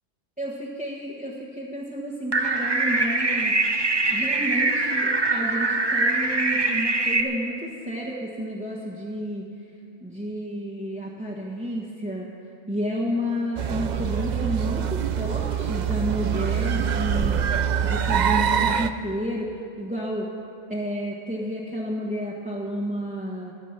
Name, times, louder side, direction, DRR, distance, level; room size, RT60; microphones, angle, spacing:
voice 1, 0.4-3.5 4.1-9.5 10.0-12.3 12.7-20.3 20.7-23.5, equal, 5° right, -5 dB, 1.4 m, -31 dB
sound 1, 2.3-7.2, right 3 dB, 25° right, 0.7 m, -23 dB
sound 2, 13.6-18.9, right 8 dB, 55° right, 0.5 m, -24 dB
23.5 x 8.4 x 5.9 m, 2.6 s
omnidirectional pair, 1.3 m